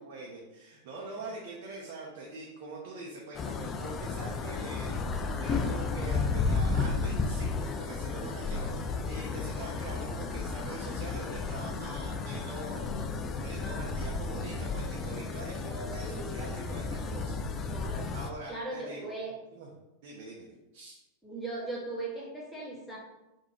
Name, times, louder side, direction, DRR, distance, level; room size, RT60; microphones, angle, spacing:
voice 1, 0.0-17.4 18.1-19.2 19.5-19.7 20.0-21.0, right 2 dB, 50° right, -2 dB, 0.8 m, -43 dB
sound 1, 3.3-18.3, left 4 dB, 25° left, 0.4 m, -33 dB
voice 2, 16.0-16.4 17.6-18.1 18.5-19.3 21.2-23.0, right 2 dB, 5° left, -5 dB, 1.5 m, -38 dB
4.0 x 2.7 x 4.3 m, 0.96 s
figure-of-eight pair, 90°, 0 cm